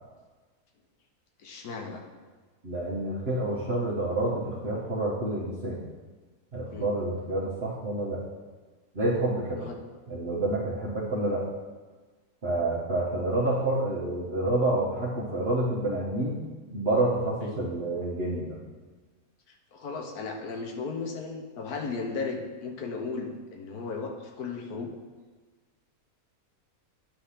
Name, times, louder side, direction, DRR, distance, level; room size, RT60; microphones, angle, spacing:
voice 1, 1.4-2.0 6.7-6.9 9.6-9.8 17.5-17.6 19.7-24.9, left 4 dB, 80° left, 3 dB, 1.4 m, -35 dB
voice 2, 2.6-5.8 6.5-8.2 8.9-9.7 10.1-11.5 12.4-16.4 16.7-18.6, right 2 dB, 45° right, -7 dB, 1.4 m, -28 dB
8.9 x 3.4 x 5.7 m, 1.4 s
omnidirectional pair, 1.6 m